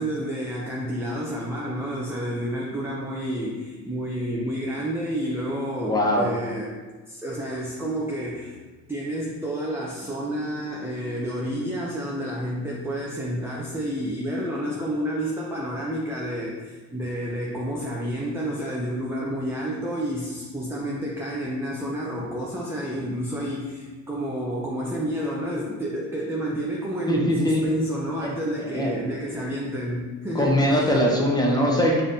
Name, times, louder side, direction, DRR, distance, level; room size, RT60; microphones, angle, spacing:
voice 1, 0.0-6.8 7.1-8.6 8.9-30.8, equal, 5° right, -3 dB, 0.5 m, -30 dB
voice 2, 5.8-6.3 27.1-27.6 28.2-28.3 28.6-28.9 30.3-32.0, equal, 10° left, -2 dB, 1.0 m, -21 dB
5.2 x 2.7 x 2.6 m, 1.3 s
supercardioid pair, 70°, 39 cm